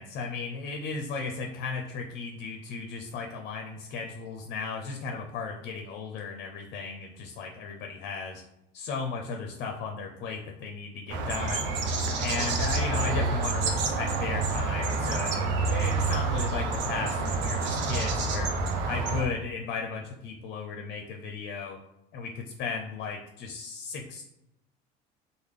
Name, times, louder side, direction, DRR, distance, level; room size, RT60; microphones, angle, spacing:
voice 1, 0.0-8.4 8.7-11.7 12.2-18.5 18.8-21.8 22.1-24.2, left 4 dB, 55° left, 3 dB, 0.5 m, -35 dB
sound 1, 11.1-19.3, right 3 dB, 70° right, 0.6 m, -28 dB
3.2 x 2.0 x 3.5 m, 0.88 s
cardioid pair, 120°, 19 cm